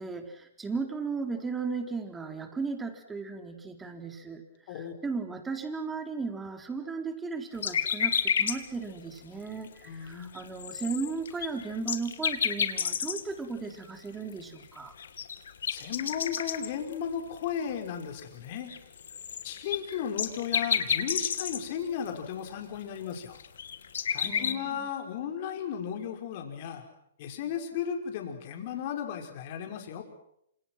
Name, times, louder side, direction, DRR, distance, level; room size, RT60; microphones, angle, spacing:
voice 1, 0.0-4.4 4.7-14.9 24.2-24.9, right 4 dB, 10° right, 6 dB, 4.0 m, -36 dB
nightingale brook mix, 7.6-8.6 9.0-9.1 9.6-9.7 10.1-10.2 10.3-13.3 14.6-14.7 15.0-16.9 17.4-17.5 18.7-21.6 22.1-22.2 22.5-22.6 23.2-24.5, left 7 dB, 65° left, 2.3 m, -30 dB
voice 2, 9.9-10.3 15.7-18.7 19.4-23.4 24.1-26.8 27.2-30.0, left 8 dB, 45° left, 4 dB, 5.3 m, -35 dB
28.5 x 27.0 x 6.2 m, 0.77 s
hypercardioid pair, 120°, 0 cm